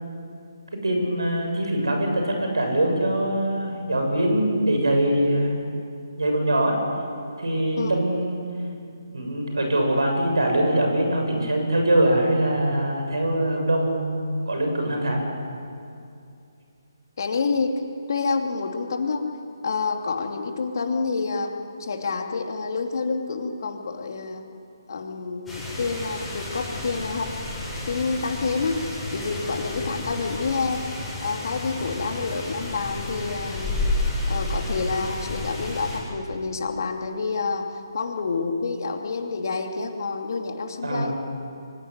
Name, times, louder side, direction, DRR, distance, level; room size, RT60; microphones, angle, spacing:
voice 1, 0.8-5.6 6.2-6.8 7.4-8.4 9.1-15.2 40.8-41.1, right 1 dB, 85° right, 2 dB, 7.4 m, -23 dB
voice 2, 17.2-17.8 18.1-19.2 19.6-21.5 21.8-24.4 24.9-27.3 27.8-30.8 31.2-33.9 34.3-37.7 37.9-41.1, left 4 dB, 55° left, 3 dB, 2.8 m, -28 dB
sound 1, 25.5-36.0, left 2 dB, 5° left, 7.7 m, -31 dB
24.5 x 16.5 x 9.7 m, 2.5 s
figure-of-eight pair, 145°, 2 cm